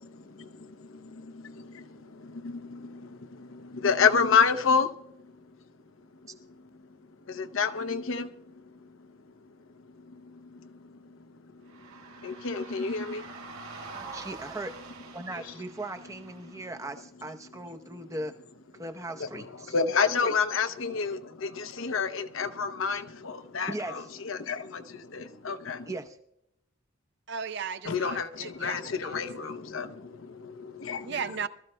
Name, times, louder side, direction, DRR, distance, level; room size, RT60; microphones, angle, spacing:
voice 1, 1.4-5.3 7.3-8.3 8.8-8.9 9.8-11.2 11.5-14.0 15.3-15.4 16.4-16.5 19.2-25.9 27.8-31.2, left 5 dB, 75° left, 0.8 m, -30 dB
sound 1, 11.7-16.8, right 4 dB, 85° right, 2.7 m, -46 dB
voice 2, 13.9-14.8 15.1-18.3 18.8-19.7 23.7-24.1 25.9-26.2, right 2 dB, 15° right, 0.7 m, -38 dB
voice 3, 27.3-29.3 31.0-31.5, right 6 dB, 55° right, 0.6 m, -36 dB
24.5 x 13.5 x 2.2 m
head